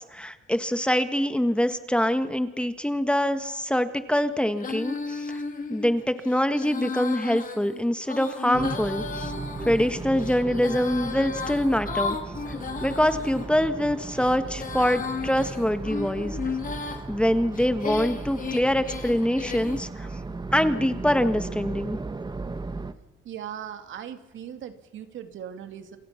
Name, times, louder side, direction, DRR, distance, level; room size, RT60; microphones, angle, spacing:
voice 1, 0.0-5.3 5.7-9.3 9.6-12.2 12.8-16.4 17.1-20.1 20.5-22.0, equal, 5° left, 9 dB, 1.5 m, -24 dB
Female singing, 4.6-13.5 14.0-17.0 17.5-19.8, left 4 dB, 45° left, 3.0 m, -34 dB
sound 1, 8.5-22.9, right 3 dB, 20° right, 1.3 m, -36 dB
voice 2, 23.2-26.0, right 9 dB, 75° right, 7 dB, 2.5 m, -39 dB
29.0 x 22.5 x 5.9 m, 1.2 s
cardioid pair, 90°, 20 cm